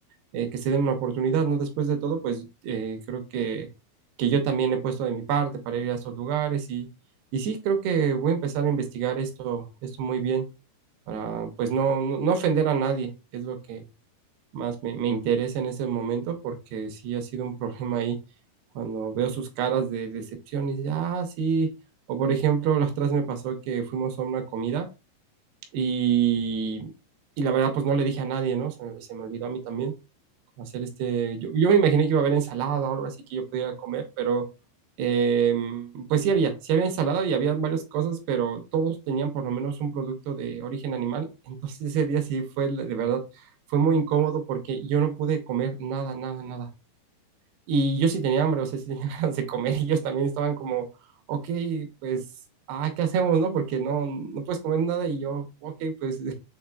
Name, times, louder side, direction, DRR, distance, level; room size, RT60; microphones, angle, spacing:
voice 1, 0.3-3.7 4.2-6.9 7.3-10.5 11.1-13.8 14.5-18.2 18.8-20.3 20.5-21.7 22.1-24.9 25.7-26.9 27.4-29.9 30.6-34.5 35.0-43.2 43.7-46.7 47.7-50.9 51.3-52.2 52.7-56.3, right 6 dB, 85° right, 6 dB, 2.9 m, -26 dB
7.2 x 3.1 x 2.3 m, 0.28 s
omnidirectional pair, 4.6 m